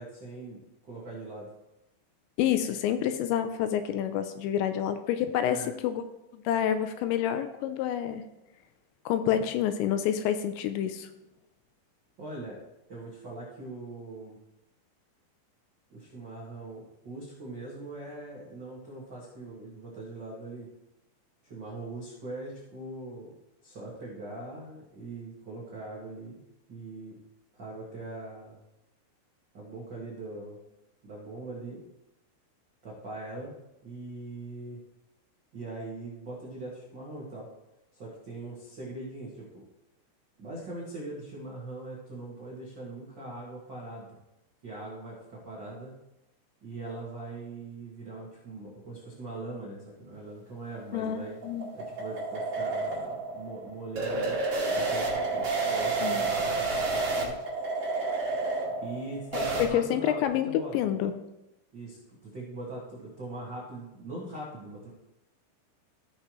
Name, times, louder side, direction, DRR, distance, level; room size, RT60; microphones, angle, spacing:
voice 1, 0.0-1.5 5.5-5.7 12.2-12.6 12.9-14.4 15.9-20.7 21.4-23.3 23.6-26.4 26.7-27.2 27.5-28.6 29.5-30.6 31.0-31.8 32.8-33.5 33.8-34.8 35.5-37.4 37.9-39.6 40.4-44.2 44.6-45.9 46.6-51.4 51.7-54.4 54.7-57.4 58.8-60.7 61.7-64.9, right 2 dB, 90° right, -6 dB, 1.0 m, -41 dB
voice 2, 2.4-6.0 6.3-8.2 9.1-11.1 50.9-51.7 56.0-56.2 59.3-61.1, left 10 dB, 80° left, 9 dB, 2.7 m, -28 dB
sound 1, 50.7-59.7, right 3 dB, 45° right, 2.3 m, -30 dB
15.0 x 6.7 x 3.1 m, 0.91 s
omnidirectional pair, 5.4 m